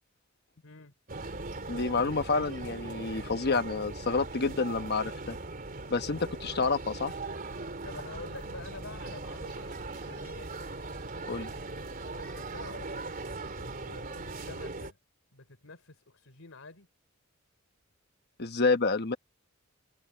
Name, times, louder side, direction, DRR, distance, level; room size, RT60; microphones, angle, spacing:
voice 1, 0.6-0.9 7.8-10.5 12.0-12.9 13.6-15.0 15.3-16.9, left 3 dB, 80° left, 3.2 m, -48 dB
sound 1, 1.1-14.9, right 3 dB, 45° right, 3.3 m, -39 dB
voice 2, 1.7-5.4 5.9-7.1 11.3-11.5 18.4-19.2, left 4 dB, 55° left, 1.2 m, -29 dB
head